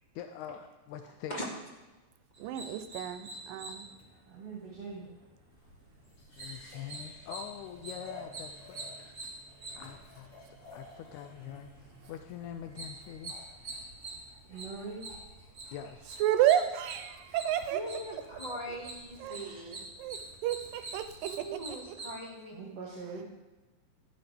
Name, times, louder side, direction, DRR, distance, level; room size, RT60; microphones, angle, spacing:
voice 1, 0.2-1.4 6.4-8.8 9.7-10.3 10.6-13.3 15.7-16.2, left 9 dB, 80° left, 7 dB, 1.7 m, -44 dB
sound 1, 2.3-22.2, right 2 dB, 30° right, 1.7 m, -46 dB
voice 2, 2.4-3.9 16.2-18.2 18.5-18.8 19.2-19.4 20.0-21.6 21.9-22.0, right 11 dB, 80° right, 9 dB, 2.2 m, -31 dB
voice 3, 4.3-5.1 14.5-15.0 22.5-23.2, right 4 dB, 50° right, -4 dB, 2.8 m, -42 dB
sound 2, 5.5-21.7, left 2 dB, 40° left, 5.0 m, -56 dB
voice 4, 17.7-19.8 21.2-22.6, equal, 15° left, -3 dB, 1.6 m, -41 dB
14.0 x 11.5 x 3.4 m, 1.1 s
omnidirectional pair, 3.9 m